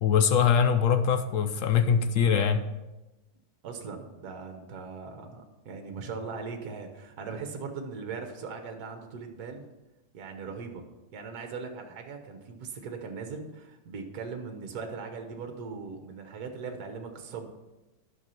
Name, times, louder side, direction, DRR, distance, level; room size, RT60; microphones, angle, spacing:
voice 1, 0.0-2.7, left 7 dB, 65° left, 8 dB, 0.8 m, -23 dB
voice 2, 3.6-9.7 10.1-10.8 11.1-17.5, right 5 dB, 60° right, 5 dB, 1.5 m, -39 dB
10.5 x 6.1 x 5.6 m, 1.0 s
omnidirectional pair, 1.9 m